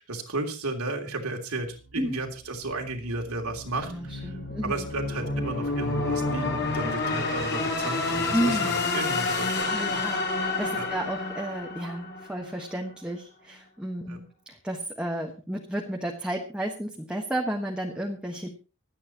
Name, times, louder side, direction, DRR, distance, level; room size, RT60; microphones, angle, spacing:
voice 1, 0.0-4.3 4.6-10.1 10.7-10.9 14.1-14.2, right 2 dB, 80° right, 3 dB, 3.2 m, -33 dB
sound 1, 1.7-12.7, left 3 dB, 50° left, 5.1 m, -30 dB
voice 2, 3.9-4.8 8.3-8.7 9.6-18.5, right 1 dB, 5° right, 1 dB, 1.4 m, -32 dB
25.0 x 9.2 x 3.0 m, 0.33 s
head